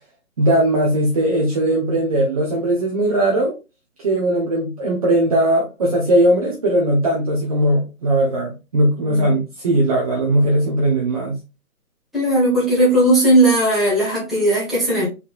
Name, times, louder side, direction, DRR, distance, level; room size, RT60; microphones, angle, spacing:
voice 1, 0.4-3.5 4.0-11.4, right 1 dB, 25° right, -1 dB, 0.7 m, -19 dB
voice 2, 12.1-15.1, right 1 dB, ahead, -8 dB, 1.3 m, -17 dB
4.2 x 4.0 x 2.4 m, 0.29 s
hypercardioid pair, 150°, 44 cm